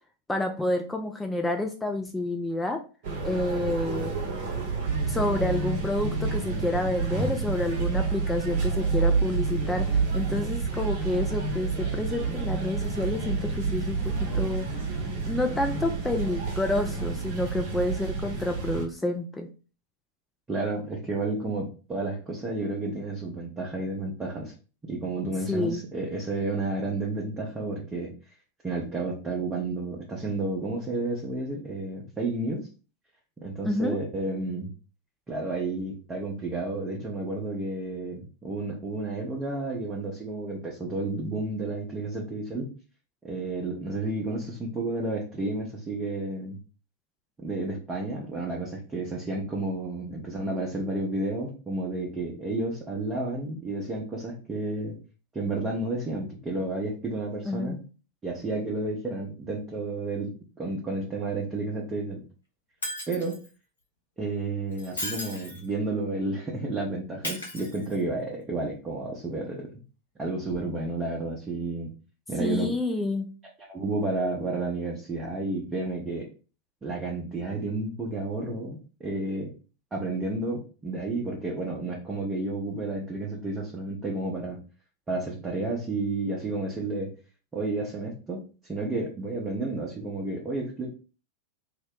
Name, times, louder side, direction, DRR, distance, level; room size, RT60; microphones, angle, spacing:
voice 1, 0.3-2.8 3.2-4.1 5.1-14.7 15.2-19.5 25.5-25.8 33.6-34.0 57.5-57.8 72.4-73.3, left 2 dB, 10° left, 3 dB, 0.3 m, -29 dB
sound 1, 3.0-18.8, right 4 dB, 50° right, 0.8 m, -29 dB
voice 2, 20.5-24.5 24.8-28.1 28.6-32.6 33.4-34.7 35.3-42.7 43.2-46.6 47.4-55.0 55.3-57.8 58.2-60.3 60.6-62.2 63.1-63.4 64.2-69.7 70.2-71.9 72.3-72.7 73.7-76.3 76.8-79.6 79.9-84.6 85.1-87.1 87.5-88.4 88.6-90.9, right 2 dB, 15° right, -3 dB, 0.7 m, -31 dB
Shatter, 62.8-63.5 64.7-65.7 67.2-68.2 70.5-70.6, left 1 dB, 75° left, 0.9 m, -36 dB
2.8 x 2.1 x 3.6 m, 0.36 s
figure-of-eight pair, 90°, 0 cm